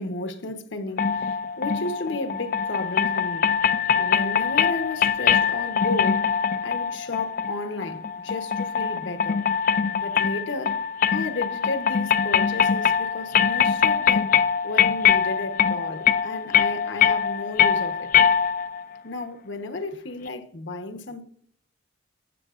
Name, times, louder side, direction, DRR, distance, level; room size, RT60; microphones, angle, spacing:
voice 1, 0.0-3.5 4.0-6.3 6.6-9.4 10.0-10.8 11.1-18.1 19.0-21.2, left 2 dB, 85° left, 1.1 m, -33 dB
sound 1, 1.0-18.8, left 7 dB, 45° left, 0.4 m, -23 dB
14.0 x 7.9 x 2.5 m
head